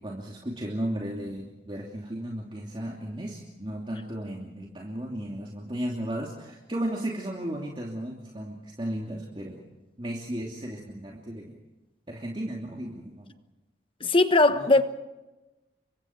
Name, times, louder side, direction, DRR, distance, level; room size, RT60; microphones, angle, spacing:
voice 1, 0.0-9.6 10.0-11.6 12.1-13.3 14.5-14.7, right 1 dB, 30° right, 2.7 m, -35 dB
voice 2, 14.0-14.8, left 2 dB, 30° left, 1.3 m, -19 dB
30.0 x 24.5 x 4.6 m
head